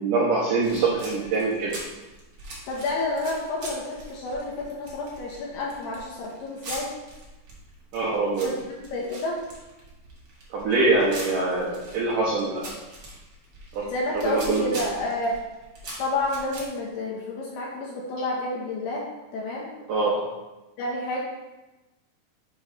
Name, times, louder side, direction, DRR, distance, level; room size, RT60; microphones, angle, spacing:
voice 1, 0.0-1.8 7.9-8.5 10.5-12.7 13.7-13.9 14.1-14.8 19.9-20.3, right 3 dB, 75° right, -6 dB, 1.9 m, -24 dB
sound 1, 0.6-16.7, right 1 dB, 50° right, 1.6 m, -42 dB
voice 2, 2.7-6.9 8.4-9.4 13.8-15.4 16.0-19.1 19.3-19.7 20.8-21.2, left 2 dB, 75° left, -3 dB, 2.6 m, -30 dB
7.0 x 3.1 x 5.4 m, 1.0 s
omnidirectional pair, 5.1 m